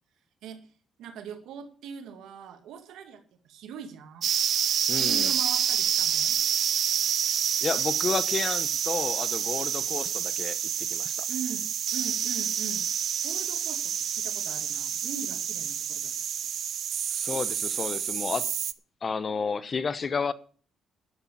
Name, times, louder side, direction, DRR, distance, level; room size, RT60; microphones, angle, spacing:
voice 1, 0.4-0.7 1.0-4.3 5.0-6.4 11.3-12.9 13.2-16.1, right 7 dB, 85° right, 2.3 m, -41 dB
sound 1, 4.2-18.7, right 9 dB, 65° right, 0.7 m, -28 dB
voice 2, 4.9-5.3 7.6-11.3 17.1-18.5 19.0-20.3, left 5 dB, 40° left, 0.9 m, -31 dB
11.0 x 7.3 x 8.6 m
cardioid pair, 90°, 0 cm